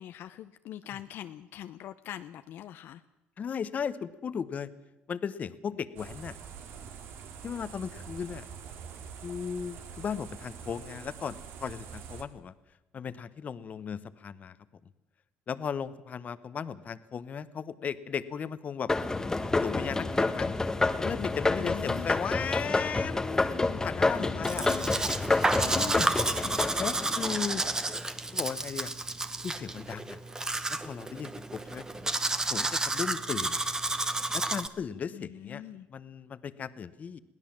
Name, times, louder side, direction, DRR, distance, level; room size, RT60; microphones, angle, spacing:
voice 1, 0.0-3.0 21.5-22.1 24.1-25.2 25.5-25.9 26.4-27.2 35.1-35.9, left 12 dB, 65° left, 10 dB, 0.7 m, -43 dB
voice 2, 3.4-4.7 5.1-6.3 7.4-8.4 9.2-12.5 12.9-14.6 15.5-18.9 19.6-20.5 21.0-24.7 25.7-26.1 26.8-27.6 28.3-28.9 29.4-30.2 30.8-32.1 32.5-33.6 34.3-35.6 35.9-37.2, left 7 dB, 40° left, 14 dB, 1.0 m, -36 dB
sound 1, 6.0-12.2, right 7 dB, 75° right, 2.2 m, -45 dB
sound 2, 18.9-28.0, left 3 dB, 15° left, 1.1 m, -29 dB
Domestic sounds home sounds, 24.4-34.7, right 2 dB, 15° right, 1.1 m, -31 dB
22.0 x 16.5 x 7.4 m, 0.98 s
cardioid pair, 105°, 4 cm